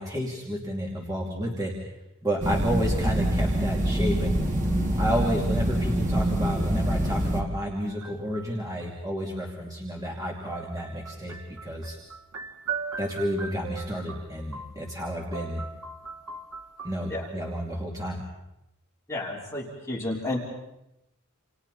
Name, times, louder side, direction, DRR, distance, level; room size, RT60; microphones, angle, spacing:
voice 1, 0.0-1.7 2.2-4.5 5.0-12.0 13.0-15.6 16.8-18.2, equal, 15° right, -2 dB, 2.8 m, -31 dB
sound 1, 2.4-7.4, right 1 dB, 35° right, 2.5 m, -25 dB
sound 2, 7.9-8.9 10.5-15.1 15.3-17.4, right 5 dB, 85° right, 2.5 m, -39 dB
voice 2, 19.1-20.4, left 2 dB, 15° left, -3 dB, 3.6 m, -31 dB
29.0 x 29.0 x 4.2 m, 0.88 s
head